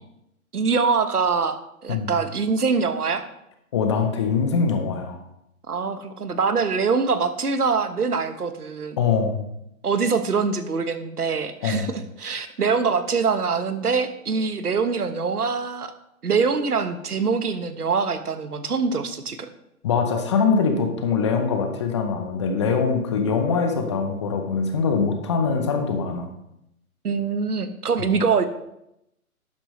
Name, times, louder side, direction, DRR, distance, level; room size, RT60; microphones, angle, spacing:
voice 1, 0.5-1.6 1.8-3.2 5.7-9.0 9.8-15.9 16.2-19.5 27.0-28.4, right 5 dB, 90° right, 10 dB, 1.2 m, -24 dB
voice 2, 3.7-5.2 9.0-9.4 11.6-11.9 19.8-26.3, left 5 dB, 20° left, 5 dB, 0.7 m, -23 dB
12.0 x 8.7 x 3.2 m, 0.83 s
hypercardioid pair, 145°, 44 cm